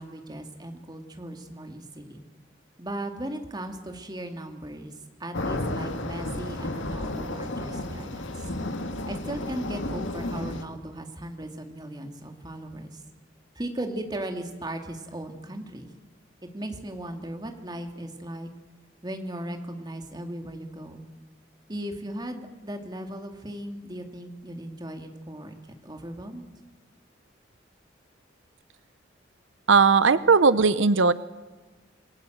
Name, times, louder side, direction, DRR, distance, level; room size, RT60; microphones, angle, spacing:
voice 1, 0.0-2.2 2.8-4.9 5.2-8.5 9.0-13.0 13.6-15.9 16.5-18.5 19.0-21.0 21.7-25.5 25.8-26.4, right 1 dB, 20° right, 5 dB, 2.3 m, -37 dB
sound 1, 5.3-10.6, left 1 dB, 80° left, 1.9 m, -32 dB
voice 2, 29.7-31.1, right 4 dB, 85° right, 15 dB, 0.8 m, -18 dB
27.5 x 20.5 x 7.9 m, 1.3 s
head